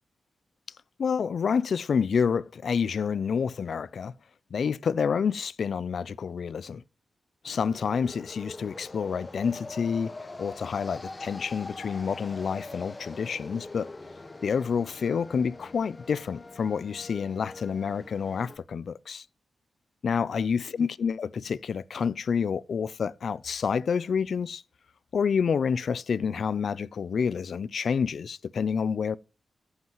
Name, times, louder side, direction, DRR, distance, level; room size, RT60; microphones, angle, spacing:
voice 1, 1.0-4.1 4.5-6.8 7.4-13.9 14.4-19.2 20.0-24.6 25.1-29.2, left 6 dB, 65° left, 0.4 m, -28 dB
sound 1, 7.4-18.6, left 2 dB, 25° left, 1.3 m, -43 dB
15.0 x 8.1 x 3.0 m
wide cardioid pair, 125°, 0 cm